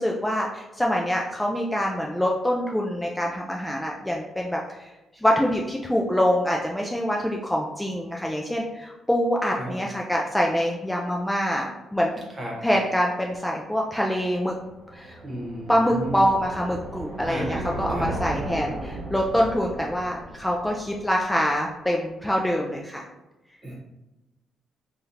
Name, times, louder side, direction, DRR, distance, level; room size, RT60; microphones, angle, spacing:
voice 1, 0.0-12.2 12.6-14.5 14.9-15.2 15.7-23.0, equal, 5° left, -1 dB, 0.3 m, -25 dB
sound 1, 14.4-21.6, right 1 dB, 80° right, 0.8 m, -36 dB
voice 2, 15.2-16.2 17.2-18.1 23.6-23.7, right 1 dB, 30° right, -2 dB, 1.1 m, -33 dB
3.3 x 2.4 x 2.7 m, 1.0 s
cardioid pair, 90°, 0 cm